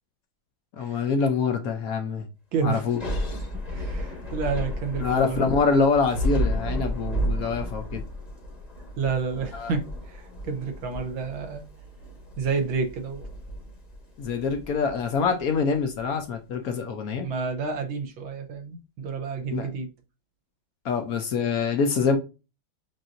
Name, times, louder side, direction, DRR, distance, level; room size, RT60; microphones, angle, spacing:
voice 1, 0.8-2.3 2.6-3.4 5.0-8.0 9.5-9.7 14.2-17.3 19.5-19.7 20.8-22.2, left 5 dB, 70° left, 0.8 m, -25 dB
voice 2, 2.5-2.8 3.3-3.4 3.7-5.5 7.4-7.5 9.0-11.6 12.4-13.2 17.2-19.9, right 5 dB, 75° right, 1.5 m, -30 dB
Thunder / Rain, 2.8-16.0, equal, 30° left, 0.8 m, -32 dB
7.3 x 2.6 x 2.5 m
omnidirectional pair, 2.3 m